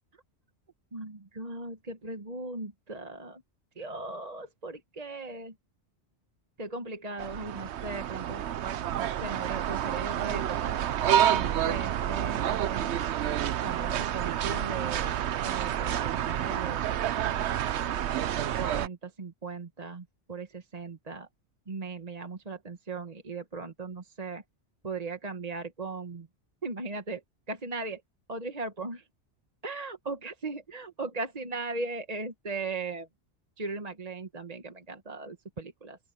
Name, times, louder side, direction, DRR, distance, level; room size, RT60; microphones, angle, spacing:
voice 1, 0.9-3.4 3.8-5.5 6.6-8.4 9.0-10.7 11.3-12.9 13.6-15.1 15.4-16.8 18.6-21.3 21.7-24.4 24.8-26.3 26.6-27.2 27.5-28.0 28.3-29.0 29.6-33.1 33.6-36.0, right 3 dB, 35° right, 1.3 m, -38 dB
sound 1, 7.2-18.9, right 10 dB, 75° right, 1.0 m, -29 dB
open air
omnidirectional pair, 1.2 m